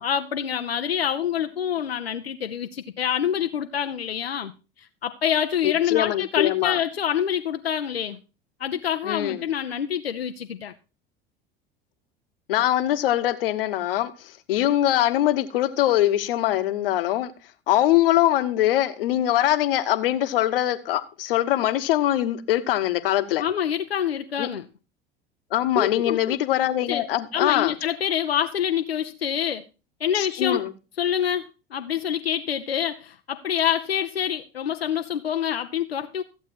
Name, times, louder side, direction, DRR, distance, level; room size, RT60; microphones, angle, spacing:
voice 1, 0.0-4.5 5.0-8.2 8.6-10.7 23.4-24.6 25.7-26.4 26.9-27.0 27.3-29.6 30.0-30.6 31.0-36.2, left 9 dB, 85° left, 0.6 m, -26 dB
voice 2, 5.6-6.8 9.0-9.5 12.5-17.3 17.7-23.4 24.4-24.5 25.5-27.7 30.1-30.7, left 13 dB, 70° left, 1.0 m, -23 dB
14.0 x 8.0 x 4.3 m
figure-of-eight pair, 75°, 30 cm